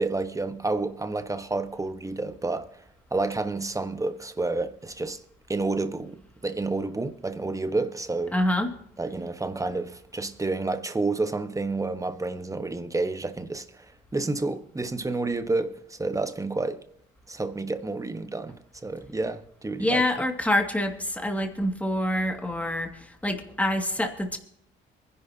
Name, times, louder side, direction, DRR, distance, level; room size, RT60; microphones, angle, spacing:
voice 1, 0.0-2.8 3.1-5.2 5.5-8.3 9.0-13.9 14.1-16.8 17.3-20.1, right 3 dB, 15° right, 1.4 m, -30 dB
voice 2, 8.3-8.7 19.8-24.4, left 1 dB, 5° left, 2.3 m, -26 dB
23.5 x 11.0 x 2.9 m
cardioid pair, 90°, 20 cm